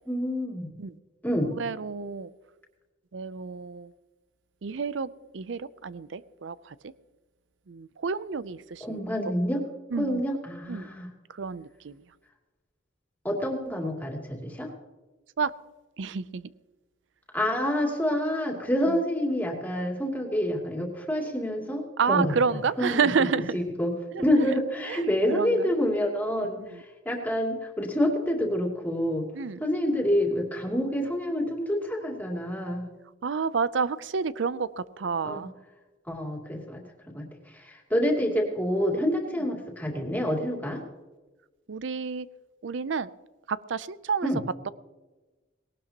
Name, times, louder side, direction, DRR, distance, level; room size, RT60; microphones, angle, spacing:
voice 1, 0.1-0.7 1.2-1.5 8.8-9.7 10.0-11.1 13.2-14.7 17.3-29.3 29.6-32.9 35.2-35.5 36.1-37.2 37.5-40.8 44.2-44.4, equal, 10° left, 2.7 m, -28 dB
voice 2, 1.6-2.3 3.1-3.9 4.6-5.1 5.3-6.7 7.7-9.0 9.9-10.2 10.7-10.9 11.4-12.0 15.4-15.5 16.0-16.4 22.0-23.6 24.1-24.2 24.9-25.0 25.3-25.5 26.6-26.8 29.3-29.6 33.2-35.5 41.7-42.3 42.6-43.1 43.5-44.3, right 5 dB, 70° right, 0.5 m, -29 dB
19.0 x 18.0 x 2.9 m
head